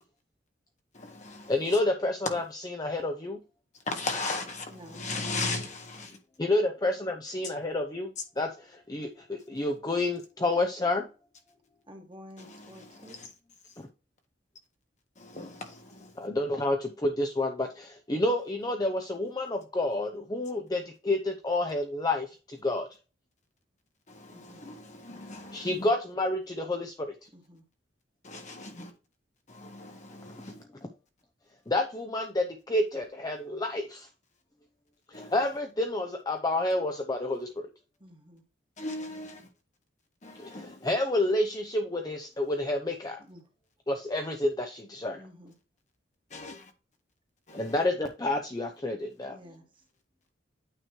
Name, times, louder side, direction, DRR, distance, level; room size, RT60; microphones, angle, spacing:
voice 1, 0.9-1.5 3.9-6.2 12.4-13.3 15.2-16.1 24.1-25.9 28.2-28.9 29.5-30.6 35.1-35.3 38.8-39.4 40.2-40.8 46.3-46.7 47.5-47.7, left 3 dB, 40° left, 1.5 m, -38 dB
voice 2, 1.5-3.4 6.4-8.1 8.4-11.1 13.8-13.9 16.2-22.9 25.5-27.1 30.8-30.9 31.7-34.1 35.1-37.7 40.3-43.2 43.9-45.3 47.5-49.4, left 2 dB, 20° left, 0.7 m, -29 dB
voice 3, 4.7-5.1 5.4-5.5 11.9-13.2 24.3-24.6 27.3-27.6 38.0-38.4 43.2-43.5 45.1-45.5 49.3-49.6, equal, 25° right, 1.5 m, -50 dB
9.1 x 3.2 x 4.5 m
head